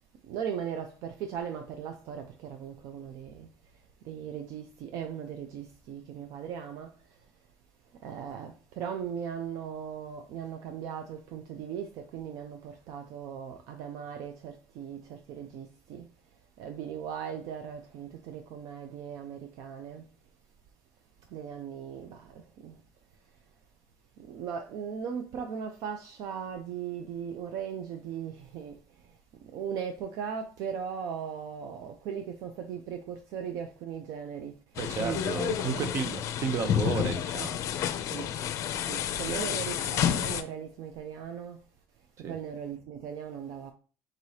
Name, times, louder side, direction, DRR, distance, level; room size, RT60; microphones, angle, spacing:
voice 1, 0.2-7.3 7.9-16.1 16.6-20.1 21.2-22.8 24.2-35.6 38.1-38.3 38.9-41.6 42.2-43.7, right 8 dB, 65° right, 0.5 m, -38 dB
sound 1, 34.8-40.4, left 10 dB, 55° left, 0.5 m, -30 dB
voice 2, 34.8-37.6 39.3-39.5 42.2-42.4, right 5 dB, 45° right, 0.9 m, -33 dB
3.9 x 2.8 x 4.8 m
cardioid pair, 120°, 7 cm